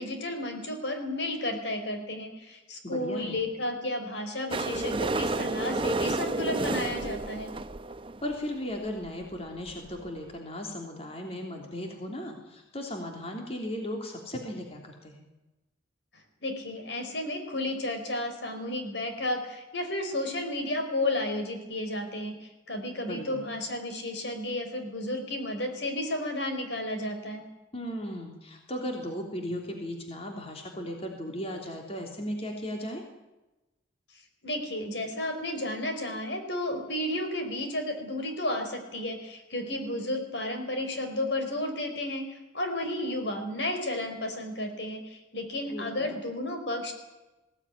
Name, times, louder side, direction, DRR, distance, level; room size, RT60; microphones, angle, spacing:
voice 1, 0.0-7.5 16.1-27.4 34.4-46.9, left 1 dB, 70° left, 5 dB, 4.8 m, -32 dB
voice 2, 2.8-3.4 8.2-15.3 23.1-23.4 27.7-33.0 45.7-46.2, equal, 30° left, 2 dB, 3.1 m, -36 dB
sound 1, 4.5-8.4 9.1-9.2 9.3-9.4 9.6-9.7 10.1-10.2, right 2 dB, 30° right, 0.7 m, -30 dB
21.5 x 16.5 x 9.9 m, 1.0 s
head